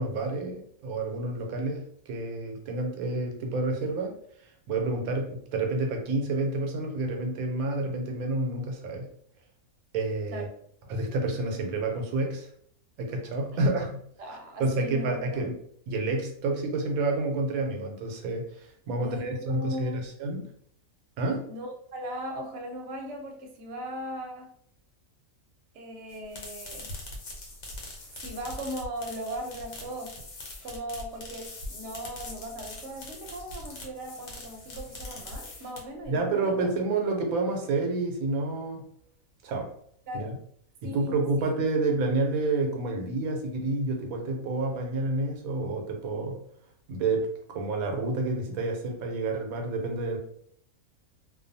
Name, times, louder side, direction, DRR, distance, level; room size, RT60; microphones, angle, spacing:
voice 1, 0.0-4.2 4.4-9.1 9.9-10.5 10.9-12.5 13.0-14.0 14.6-15.5 15.9-20.4 21.2-21.5 36.1-38.9 39.4-39.7 40.1-40.4 40.8-46.4 46.9-50.2, right 2 dB, 90° right, 2 dB, 1.0 m, -29 dB
voice 2, 13.5-13.8 14.2-15.5 19.0-20.0 21.5-24.5 25.7-26.9 28.2-30.1 30.6-36.5 40.1-40.4 40.8-41.2, equal, 65° right, 1 dB, 0.9 m, -38 dB
sound 1, 26.1-36.1, left 2 dB, 80° left, 1.2 m, -42 dB
2.4 x 2.2 x 2.6 m, 0.64 s
omnidirectional pair, 1.4 m